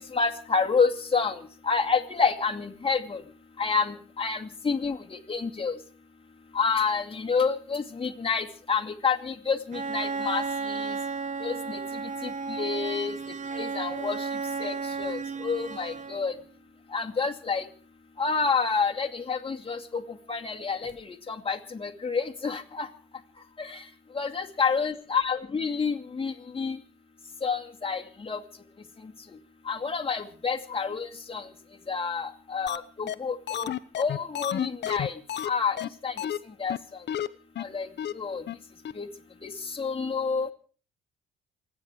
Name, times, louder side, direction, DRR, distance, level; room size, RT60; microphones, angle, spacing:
voice 1, 0.1-1.4 1.6-3.2 3.6-5.0 5.3-5.7 6.5-10.9 11.4-11.8 12.5-13.1 13.5-14.2 14.6-16.3 16.9-17.6 18.2-20.0 20.3-22.9 23.6-23.8 24.1-26.8 27.4-28.4 29.7-31.4 31.9-35.1 35.4-35.8 36.0-36.1 36.6-36.8 37.6-37.9 38.2-38.4 39.0-39.1 39.7-40.5, left 5 dB, 25° left, 4 dB, 2.4 m, -28 dB
Bowed string instrument, 9.7-16.4, right 4 dB, 40° right, 1.4 m, -33 dB
sound 1, 32.7-32.8 33.1-33.2 33.5-35.5 35.8-35.9 36.2-36.4 36.7-36.8 37.1-37.3 37.6-37.7 38.0-38.1 38.5-38.6 38.8-38.9, left 10 dB, 60° left, 0.9 m, -30 dB
28.0 x 10.0 x 4.9 m, 0.41 s
cardioid pair, 90°, 20 cm